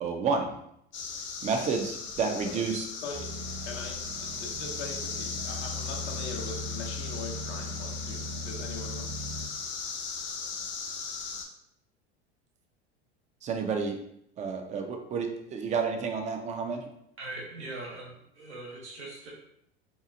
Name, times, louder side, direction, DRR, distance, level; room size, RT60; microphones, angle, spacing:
voice 1, 0.0-0.6 1.4-2.9 13.4-14.0 14.4-16.8, right 5 dB, 20° right, 4 dB, 0.4 m, -30 dB
sound 1, 0.9-11.4, left 5 dB, 35° left, 0.5 m, -38 dB
sound 2, 3.1-9.5, left 1 dB, 55° right, 0.7 m, -39 dB
voice 2, 3.6-9.1, left 3 dB, 85° left, 0 dB, 0.8 m, -41 dB
voice 3, 17.2-19.3, right 2 dB, 85° right, -3 dB, 1.1 m, -41 dB
2.8 x 2.3 x 2.5 m, 0.74 s
hypercardioid pair, 85°, 33 cm